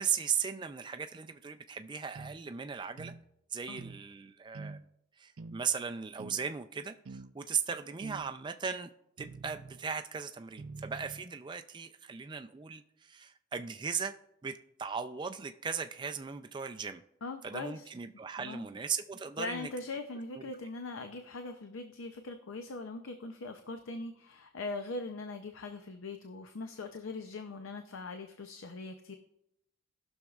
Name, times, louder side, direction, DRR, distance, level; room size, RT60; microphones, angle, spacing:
voice 1, 0.0-3.1 3.5-4.8 5.2-8.9 9.2-14.1 14.4-17.0 17.4-19.7 20.4-20.5, right 6 dB, 20° right, 0.3 m, -37 dB
sound 1, 2.1-2.4 3.0-3.2 3.8-4.0 4.5-4.8 5.4-5.6 6.2-6.4 7.0-7.3 8.0-8.3 9.2-9.8 10.6-11.2, right 3 dB, 70° right, 0.6 m, -46 dB
voice 2, 17.2-17.9 18.4-18.7 19.4-29.1, left 3 dB, 65° left, 0.6 m, -41 dB
19.0 x 6.3 x 2.4 m
head